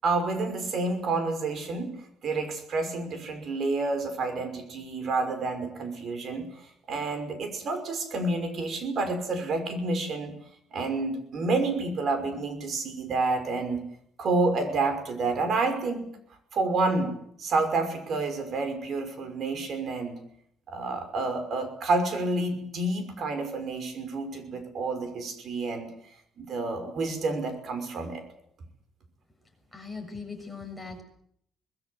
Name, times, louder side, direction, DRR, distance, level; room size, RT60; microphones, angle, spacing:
voice 1, 0.0-1.9 2.2-6.4 6.9-10.3 10.7-13.8 14.2-16.1 16.5-20.2 20.7-25.9 26.4-28.2, right 3 dB, 60° right, 8 dB, 5.8 m, -29 dB
voice 2, 29.7-31.0, left 4 dB, ahead, 2 dB, 7.1 m, -39 dB
24.5 x 20.5 x 8.1 m, 0.72 s
cardioid pair, 100°, 0 cm